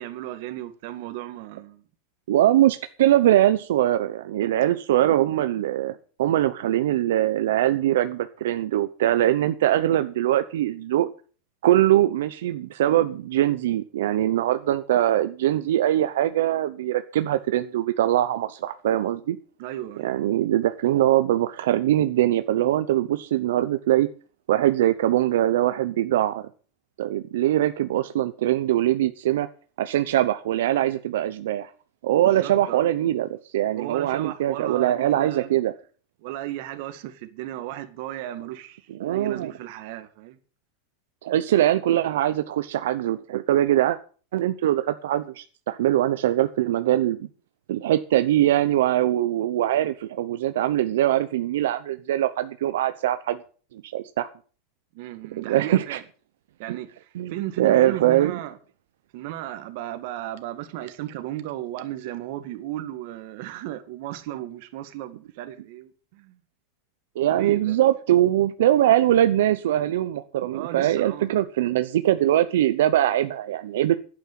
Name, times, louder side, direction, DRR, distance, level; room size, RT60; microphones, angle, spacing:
voice 1, 0.0-1.8 19.6-20.3 32.1-32.9 33.8-35.5 36.2-40.4 54.9-56.0 56.6-58.6 59.1-66.4 67.3-67.8 70.5-71.4, right 14 dB, 55° right, 1.9 m, -35 dB
voice 2, 2.3-11.1 11.6-19.4 20.0-24.1 24.5-26.5 27.0-29.5 29.8-31.7 32.0-35.7 39.0-39.5 41.2-44.0 44.3-47.3 47.7-53.4 53.7-54.3 55.4-56.0 56.7-56.8 57.2-58.4 67.2-73.9, right 13 dB, 80° right, 0.8 m, -22 dB
11.5 x 8.8 x 7.5 m
supercardioid pair, 165°, 0 cm